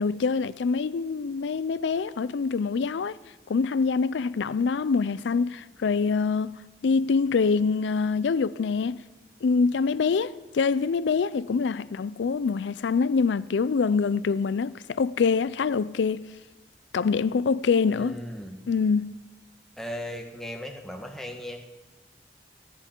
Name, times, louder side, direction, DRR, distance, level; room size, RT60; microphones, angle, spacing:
voice 1, 0.0-3.2 3.5-9.0 9.4-16.3 16.9-18.2 18.7-19.2, left 5 dB, 85° left, 0.4 m, -25 dB
voice 2, 17.9-18.6 19.8-21.6, left 1 dB, ahead, 1.4 m, -37 dB
28.5 x 10.0 x 4.5 m
head